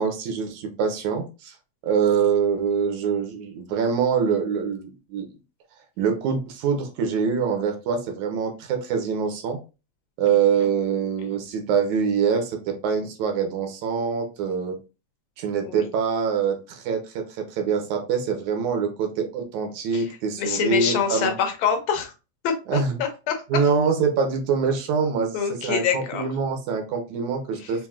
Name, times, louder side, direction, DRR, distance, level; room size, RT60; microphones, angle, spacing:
voice 1, 0.0-1.6 1.8-5.3 6.0-9.6 10.2-14.8 15.4-21.3 22.7-23.0 23.5-25.4 25.6-27.9, right 6 dB, 75° right, 4 dB, 2.1 m, -24 dB
voice 2, 10.3-10.7 15.6-15.9 19.9-22.1 22.4-23.4 25.3-26.3 27.6-27.8, left 7 dB, 75° left, 4 dB, 1.9 m, -26 dB
5.6 x 2.6 x 2.3 m, 0.30 s
omnidirectional pair, 3.4 m